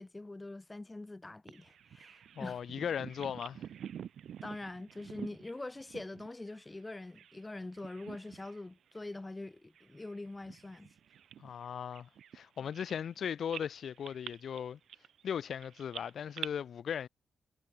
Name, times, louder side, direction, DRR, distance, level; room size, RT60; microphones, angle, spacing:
voice 1, 0.0-2.6 4.4-10.9, left 2 dB, 15° left, 1.5 m, -44 dB
Bird vocalization bird call bird song, 1.5-7.4 7.7-8.6 8.9-9.1 9.7-13.2 13.5-16.5, right 9 dB, 80° right, 2.7 m, -48 dB
voice 2, 2.4-3.7 11.4-14.8 15.2-17.1, left 8 dB, 65° left, 0.7 m, -38 dB
wide cardioid pair, 150°, 0 cm